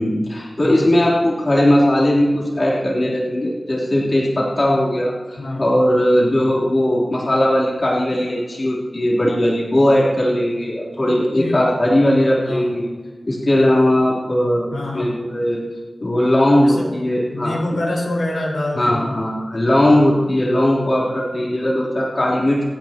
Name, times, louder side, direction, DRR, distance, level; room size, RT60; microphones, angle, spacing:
voice 1, 0.0-12.9 13.3-15.6 16.0-17.6 18.8-22.6, left 1 dB, 40° left, -5 dB, 3.5 m, -18 dB
voice 2, 11.0-11.6 12.4-12.7 14.7-15.1 16.6-16.9 17.3-19.2 21.0-21.2, left 1 dB, 85° left, -4 dB, 4.5 m, -26 dB
27.0 x 9.5 x 3.0 m, 1.4 s
wide cardioid pair, 90°, 0 cm